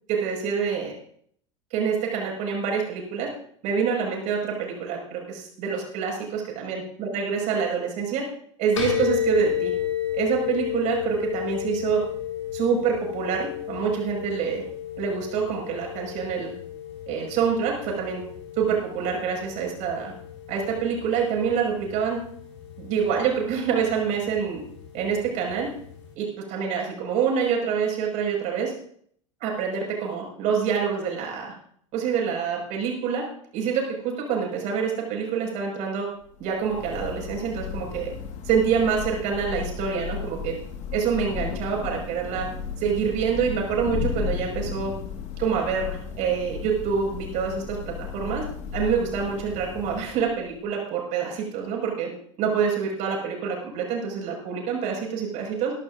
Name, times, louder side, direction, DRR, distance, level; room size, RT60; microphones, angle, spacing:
voice 1, 0.1-0.9 1.7-3.3 3.6-8.3 8.6-9.7 10.1-12.0 12.5-14.6 15.0-16.5 17.1-18.2 18.6-20.1 20.5-22.2 22.8-24.6 24.9-25.7 26.2-28.7 29.4-31.5 31.9-33.2 33.5-36.1 36.4-38.1 38.4-40.6 40.9-42.5 42.8-44.9 45.4-48.5 48.7-52.1 52.4-55.7, right 6 dB, 50° right, 0 dB, 5.9 m, -26 dB
sound 1, 8.8-26.1, left 10 dB, 75° left, 4.4 m, -33 dB
Thunder / Rain, 36.3-50.6, left 7 dB, 45° left, 1.9 m, -34 dB
21.0 x 12.0 x 2.7 m, 0.63 s
figure-of-eight pair, 80°, 16 cm